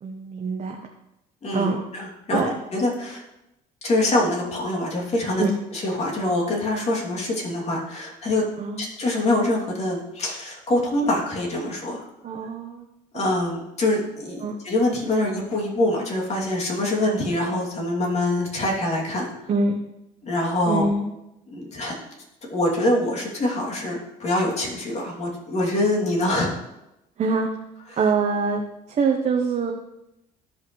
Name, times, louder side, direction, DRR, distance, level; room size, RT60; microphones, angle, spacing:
voice 1, 0.0-0.8 1.5-1.8 2.3-2.5 5.4-5.5 8.6-8.9 12.2-12.9 13.1-13.2 14.4-14.6 19.5-19.8 20.7-21.1 27.2-27.5 28.0-28.6 28.9-29.7, right 4 dB, 45° right, 2 dB, 0.9 m, -24 dB
voice 2, 1.4-3.2 3.8-5.4 5.7-8.4 8.8-12.0 13.1-19.3 20.2-20.9 21.5-22.0 22.5-26.6, left 1 dB, 40° left, -1 dB, 2.7 m, -24 dB
13.5 x 5.5 x 3.2 m, 0.89 s
cardioid pair, 110°, 17 cm